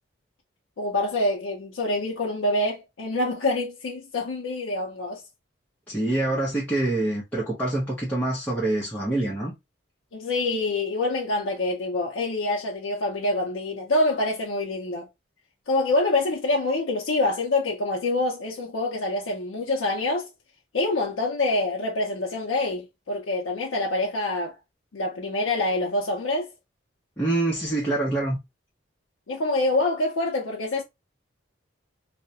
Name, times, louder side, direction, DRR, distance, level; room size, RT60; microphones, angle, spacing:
voice 1, 0.8-5.2 10.1-15.1 15.7-20.3 20.7-24.6 24.9-26.5 29.3-30.8, left 2 dB, 70° left, 0.5 m, -26 dB
voice 2, 5.9-9.5 27.2-28.4, right 2 dB, 10° left, 0.6 m, -25 dB
2.3 x 2.0 x 2.7 m
head